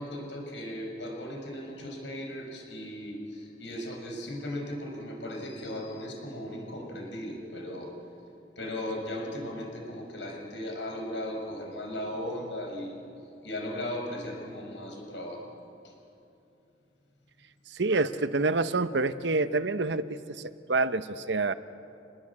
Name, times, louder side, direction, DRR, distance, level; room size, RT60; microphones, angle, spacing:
voice 1, 0.0-7.9 8.6-13.0 13.4-15.4 15.8-15.9, left 1 dB, 85° left, 1 dB, 6.4 m, -37 dB
voice 2, 17.7-21.5, right 3 dB, 80° right, 12 dB, 0.9 m, -27 dB
26.5 x 20.5 x 8.6 m, 2.7 s
head